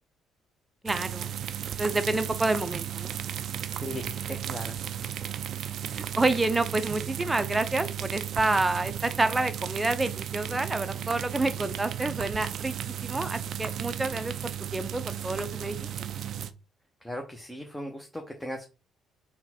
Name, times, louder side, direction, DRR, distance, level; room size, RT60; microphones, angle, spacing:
voice 1, 0.8-1.3 1.8-3.1 5.9-12.7 13.0-15.8, right 2 dB, 20° right, 0.6 m, -28 dB
sound 1, 0.9-16.5, right 10 dB, 65° right, 0.4 m, -34 dB
voice 2, 3.7-4.8 17.0-18.6, equal, 10° left, 0.9 m, -38 dB
3.9 x 2.3 x 4.3 m
hypercardioid pair, 55°, 0 cm